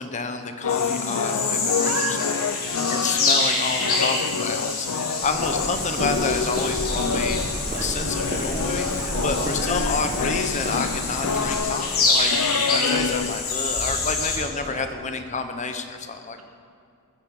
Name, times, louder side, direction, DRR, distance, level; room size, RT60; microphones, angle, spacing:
voice 1, 0.0-1.9 2.2-2.3 2.9-7.4 7.7-16.4, left 4 dB, 35° left, 7 dB, 1.1 m, -29 dB
sound 1, 0.6-13.4, left 5 dB, 85° left, 0.6 m, -28 dB
sound 2, 0.7-14.4, left 3 dB, 70° left, 3.8 m, -27 dB
voice 2, 1.8-2.9 3.2-4.0 4.9-5.2 7.8-8.5 9.0-9.9 14.7-14.9, right 3 dB, 65° right, 1 dB, 2.3 m, -36 dB
Walk footsteps, 5.2-11.6, right 1 dB, 40° right, 1.8 m, -31 dB
21.0 x 9.8 x 5.5 m, 2.6 s
head